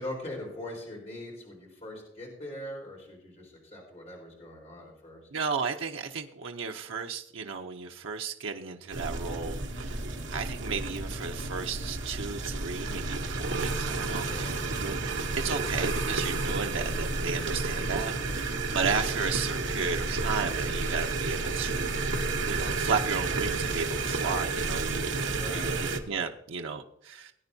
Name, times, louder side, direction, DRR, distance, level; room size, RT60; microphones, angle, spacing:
voice 1, 0.0-5.2 14.2-14.6 25.1-25.8, left 1 dB, 35° left, -2 dB, 4.2 m, -41 dB
voice 2, 5.3-10.0 10.3-21.9 22.5-27.3, right 5 dB, 90° right, 4 dB, 0.6 m, -34 dB
sound 1, 8.9-26.0, right 3 dB, 70° right, 1.2 m, -31 dB
18.5 x 9.6 x 2.7 m, 0.82 s
head